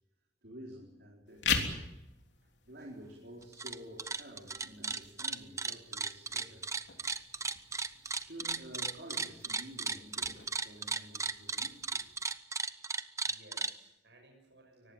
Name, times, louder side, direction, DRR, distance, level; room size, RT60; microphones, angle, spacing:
voice 1, 0.4-1.9 2.7-6.7 8.2-12.1, equal, 65° right, -1 dB, 4.3 m, -50 dB
sound 1, 1.3-12.3, left 6 dB, 85° left, 3.4 m, -42 dB
sound 2, 3.4-3.7 4.0-13.7, right 4 dB, 20° right, 0.8 m, -35 dB
voice 2, 13.2-14.9, right 1 dB, 85° right, 2 dB, 6.7 m, -60 dB
24.0 x 19.0 x 9.0 m, 0.86 s
head